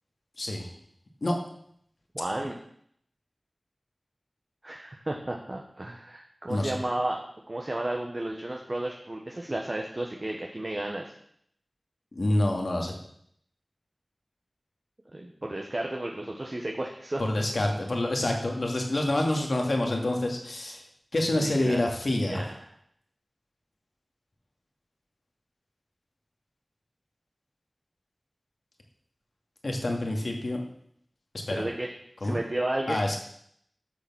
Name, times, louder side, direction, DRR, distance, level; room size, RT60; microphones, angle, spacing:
voice 1, 0.4-0.7 1.2-1.4 6.5-6.7 12.1-12.9 17.2-20.8 21.1-22.4 29.6-30.6 31.3-31.7 32.2-32.4 32.9-33.2, left 1 dB, 70° left, 2 dB, 2.4 m, -27 dB
voice 2, 2.1-2.5 4.6-7.2 7.5-11.1 15.1-17.2 21.3-21.8 22.1-22.6 31.5-31.9 32.2-33.2, right 1 dB, 45° right, 1 dB, 1.4 m, -33 dB
12.0 x 6.9 x 6.4 m, 0.69 s
wide cardioid pair, 40°, 0 cm